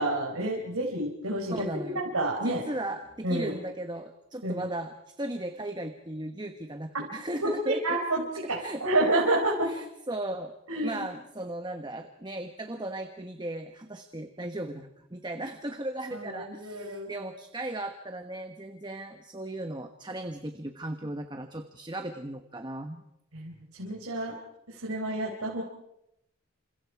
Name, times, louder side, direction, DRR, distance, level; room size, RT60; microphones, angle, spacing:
voice 1, 0.0-2.6 3.2-3.5 4.4-4.7 6.9-7.0 7.4-9.7 10.7-11.0 16.1-17.1 23.3-24.3 24.7-25.6, right 1 dB, 85° right, -1 dB, 4.3 m, -29 dB
voice 2, 1.5-2.0 2.4-8.0 8.6-8.8 9.6-23.0, right 1 dB, 20° right, 6 dB, 1.2 m, -37 dB
28.5 x 27.0 x 4.8 m, 0.82 s
head